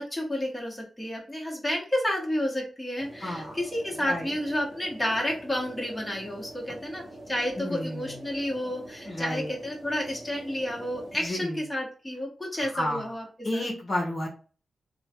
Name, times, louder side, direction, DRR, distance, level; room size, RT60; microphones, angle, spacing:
voice 1, 0.0-13.2 13.5-13.6, left 1 dB, 10° left, -2 dB, 1.2 m, -31 dB
sound 1, 3.0-11.3, right 1 dB, 15° right, 1.0 m, -44 dB
voice 2, 3.2-3.6 4.0-4.3 7.6-8.2 9.0-9.5 11.1-11.6 12.6-13.2 13.4-14.3, left 1 dB, 45° left, -2 dB, 0.9 m, -31 dB
3.0 x 2.2 x 2.8 m, 0.38 s
cardioid pair, 75°, 0 cm